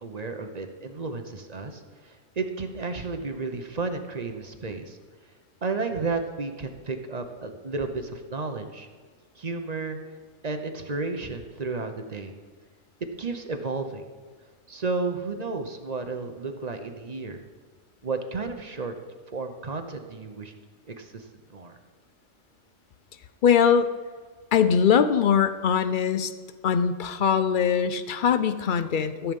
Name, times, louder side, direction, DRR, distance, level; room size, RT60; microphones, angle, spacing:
voice 1, 0.0-5.0 5.6-8.9 9.4-10.0 10.4-12.3 13.2-14.0 14.7-17.4 18.0-18.9 19.3-20.5 20.9-21.8, right 3 dB, 35° right, 6 dB, 0.8 m, -32 dB
voice 2, 23.4-23.9 24.5-26.3 26.6-29.3, left 7 dB, 55° left, 11 dB, 0.6 m, -22 dB
14.5 x 7.2 x 5.3 m, 1.5 s
omnidirectional pair, 1.3 m